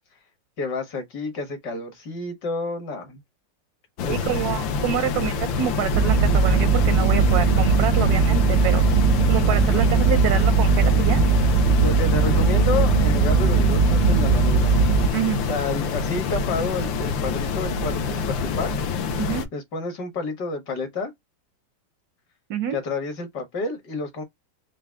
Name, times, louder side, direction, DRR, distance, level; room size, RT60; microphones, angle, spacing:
voice 1, 0.6-3.2 4.0-4.2 9.7-9.8 11.8-14.7 15.5-18.9 19.5-21.1 22.7-24.2, left 3 dB, 60° left, 1.8 m, -30 dB
sound 1, 4.0-19.5, left 5 dB, 80° left, 1.5 m, -27 dB
voice 2, 4.1-8.8 9.3-11.2 15.1-15.4 19.2-19.5 22.5-22.8, right 11 dB, 70° right, 0.9 m, -27 dB
sound 2, 5.9-15.1, right 5 dB, 90° right, 1.6 m, -19 dB
4.8 x 2.1 x 3.4 m
omnidirectional pair, 2.1 m